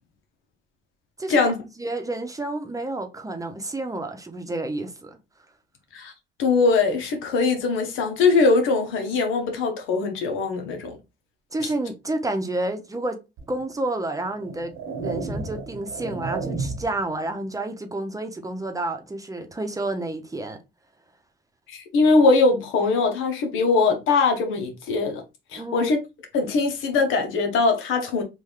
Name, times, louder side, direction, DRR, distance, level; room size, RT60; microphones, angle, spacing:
voice 1, 1.3-1.6 5.9-6.1 6.4-11.0 21.7-25.2 25.5-26.0 26.3-28.2, left 4 dB, 90° left, 1.1 m, -21 dB
voice 2, 1.8-5.2 11.5-13.2 13.5-14.7 15.0-20.6 25.6-25.9, right 2 dB, 15° right, 0.8 m, -30 dB
sound 1, 13.4-13.5 14.3-17.0, right 4 dB, 90° right, 1.2 m, -32 dB
3.6 x 2.6 x 3.1 m
cardioid pair, 90°, 20 cm